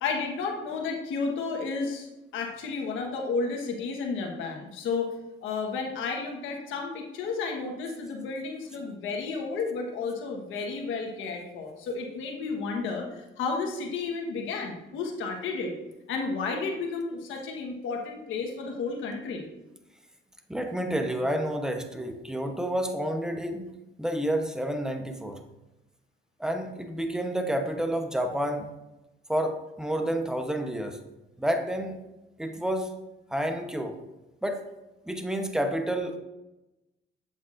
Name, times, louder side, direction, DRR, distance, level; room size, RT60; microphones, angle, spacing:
voice 1, 0.0-5.1 5.4-15.7 16.1-19.5, left 4 dB, 90° left, 1 dB, 1.4 m, -32 dB
voice 2, 20.5-23.7 24.0-25.4 26.4-28.7 29.3-31.0 31.4-31.9 32.4-32.9 33.3-34.0 34.4-34.6 35.1-36.2, right 1 dB, 5° right, 5 dB, 0.9 m, -29 dB
8.2 x 7.4 x 2.6 m, 0.98 s
cardioid pair, 90°, 20 cm